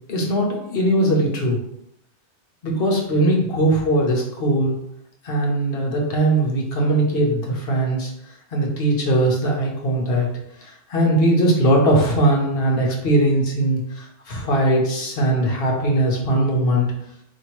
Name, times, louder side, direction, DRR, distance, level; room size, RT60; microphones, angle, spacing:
voice 1, 0.1-1.6 2.6-4.7 5.2-8.1 8.5-10.3 10.9-16.9, right 1 dB, 55° left, -1 dB, 1.1 m, -20 dB
4.3 x 2.8 x 3.1 m, 0.76 s
omnidirectional pair, 1.2 m